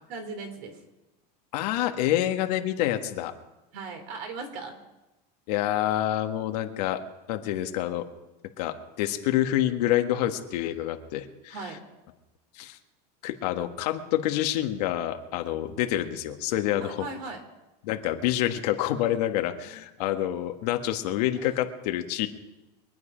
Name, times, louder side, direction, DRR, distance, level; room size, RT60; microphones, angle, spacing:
voice 1, 0.1-0.8 3.7-4.8 11.5-11.8 16.8-17.4, right 4 dB, 60° right, 6 dB, 3.3 m, -38 dB
voice 2, 1.5-3.3 5.5-7.0 7.3-8.0 8.6-11.7 12.5-12.8 13.2-17.0 17.8-22.3, left 13 dB, 70° left, 6 dB, 1.5 m, -27 dB
23.5 x 9.5 x 5.1 m, 1.0 s
supercardioid pair, 145°, 21 cm